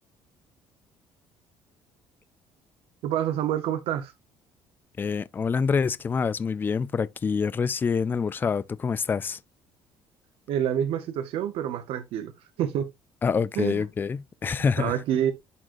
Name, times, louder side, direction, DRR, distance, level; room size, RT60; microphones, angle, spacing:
voice 1, 3.0-4.1 10.5-12.3 12.6-12.9 13.6-13.8 14.8-15.3, right 10 dB, 70° right, 0.9 m, -27 dB
voice 2, 5.0-9.4 13.2-15.0, left 5 dB, 20° left, 0.3 m, -26 dB
11.0 x 3.8 x 2.5 m
cardioid pair, 150°, 10 cm